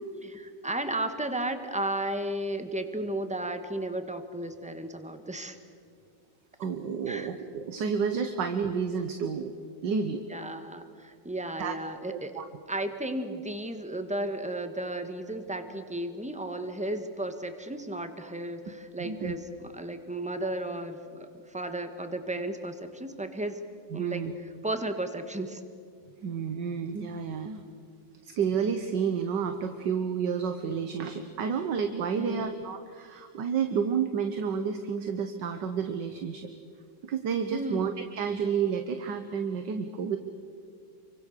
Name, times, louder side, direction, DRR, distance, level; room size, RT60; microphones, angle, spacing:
voice 1, 0.2-5.6 7.1-7.3 10.3-12.4 12.7-23.6 23.9-24.2 24.6-25.6 32.1-32.5 37.5-37.9, right 1 dB, 5° right, 7 dB, 1.3 m, -34 dB
voice 2, 6.6-9.5 9.8-10.2 11.6-11.7 12.1-12.5 19.0-19.3 23.9-24.3 26.2-27.6 28.2-36.5 37.0-40.2, right 6 dB, 65° right, 7 dB, 1.7 m, -30 dB
29.0 x 24.0 x 6.7 m, 2.2 s
omnidirectional pair, 2.1 m